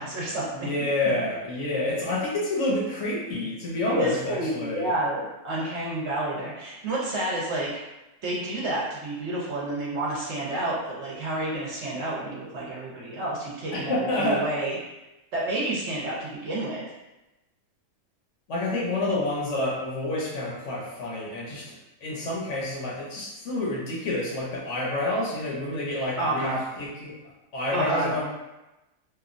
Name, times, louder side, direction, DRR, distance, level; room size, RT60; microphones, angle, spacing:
voice 1, 0.0-1.2 3.9-7.8 8.2-14.8 15.3-16.8 26.2-26.6 27.7-28.1, right 1 dB, 60° right, -5 dB, 0.9 m, -30 dB
voice 2, 0.5-4.9 13.8-14.4 18.5-21.8 22.0-27.1 27.5-28.3, left 2 dB, 65° left, -5 dB, 0.9 m, -28 dB
3.0 x 2.2 x 2.5 m, 0.99 s
omnidirectional pair, 1.5 m